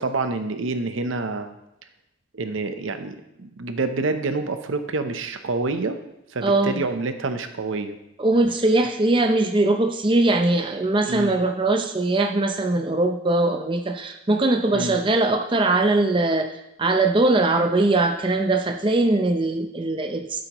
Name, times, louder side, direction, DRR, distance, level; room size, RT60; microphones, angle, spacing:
voice 1, 0.0-1.5 2.3-6.0 6.3-8.0 11.1-11.3 14.7-15.0, right 3 dB, 80° right, 8 dB, 0.7 m, -27 dB
voice 2, 6.4-6.8 8.2-20.4, right 2 dB, 25° right, 4 dB, 0.6 m, -21 dB
13.0 x 7.8 x 3.0 m, 0.87 s
head